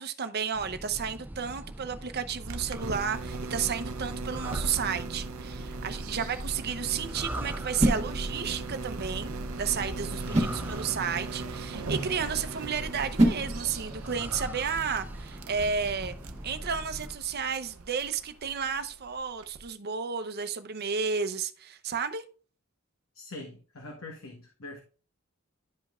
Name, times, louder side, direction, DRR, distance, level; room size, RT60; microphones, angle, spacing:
voice 1, 0.0-9.3 9.6-16.2 16.4-22.2, right 6 dB, 50° right, 0.7 m, -32 dB
sound 1, 0.5-17.2, right 1 dB, 10° right, 0.4 m, -41 dB
sound 2, 2.5-19.7, right 3 dB, 85° right, 0.7 m, -40 dB
sound 3, 5.0-14.2, right 1 dB, 30° right, 1.6 m, -33 dB
voice 2, 10.1-10.7 23.1-24.8, left 1 dB, 65° left, 1.3 m, -42 dB
11.0 x 5.1 x 2.4 m
head